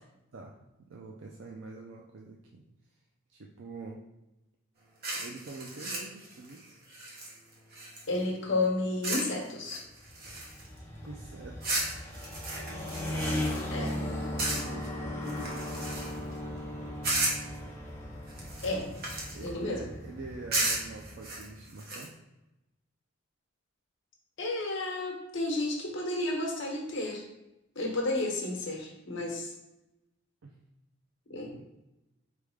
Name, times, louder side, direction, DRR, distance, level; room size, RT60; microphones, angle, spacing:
voice 1, 0.3-2.6 3.3-4.0 5.2-6.8 10.6-11.8 13.6-16.1 19.3-22.1 30.4-30.5 31.5-31.9, right 3 dB, 65° right, -1 dB, 0.4 m, -46 dB
sound 1, 5.0-8.2 9.0-9.3 9.6-10.8 11.6-14.0 14.4-14.9 15.2-16.3 17.0-17.6 18.3-19.5 20.5-22.1, right 2 dB, 45° right, 1.0 m, -34 dB
voice 2, 8.1-9.8 13.7-13.9 18.6-19.0 19.4-19.8 24.4-27.2 27.7-29.5 31.3-31.5, left 2 dB, 65° left, 0 dB, 1.0 m, -32 dB
sound 2, 9.9-21.5, left 1 dB, 10° left, 0.5 m, -37 dB
4.4 x 3.4 x 3.5 m, 0.94 s
head